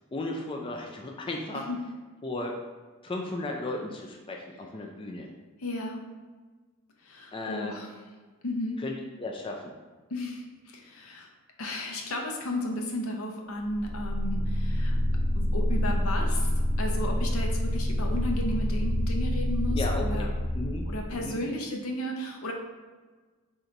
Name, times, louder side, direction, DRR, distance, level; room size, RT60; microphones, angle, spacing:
voice 1, 0.1-1.7 2.2-2.6 3.0-5.3 7.3-7.7 8.8-9.7 19.7-20.3 20.5-20.8 21.1-21.4, left 2 dB, 25° left, 1 dB, 0.3 m, -35 dB
voice 2, 5.6-6.0 7.0-7.9 8.4-8.8 10.1-11.3 11.6-15.0 15.4-16.5 16.8-20.3 20.9-22.5, left 1 dB, 80° left, 1 dB, 0.7 m, -34 dB
sound 1, 13.7-21.3, equal, 20° right, 0.7 m, -27 dB
3.8 x 2.7 x 4.4 m, 1.4 s
head